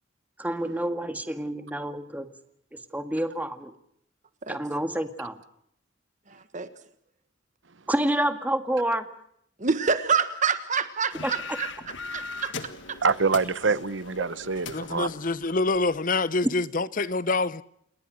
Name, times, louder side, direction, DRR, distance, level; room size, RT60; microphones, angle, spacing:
voice 1, 0.4-2.3 2.7-3.7 4.5-5.4 7.9-9.1 11.2-11.3, right 1 dB, 10° right, 1.8 m, -28 dB
voice 2, 9.6-11.7 12.1-12.5 12.9-13.0, right 5 dB, 40° right, 1.5 m, -26 dB
sound 1, 11.1-16.0, left 4 dB, 70° left, 1.8 m, -40 dB
voice 3, 13.0-15.1, right 4 dB, 70° right, 1.0 m, -25 dB
voice 4, 14.7-17.6, left 3 dB, 45° left, 0.9 m, -26 dB
29.0 x 20.0 x 6.4 m
head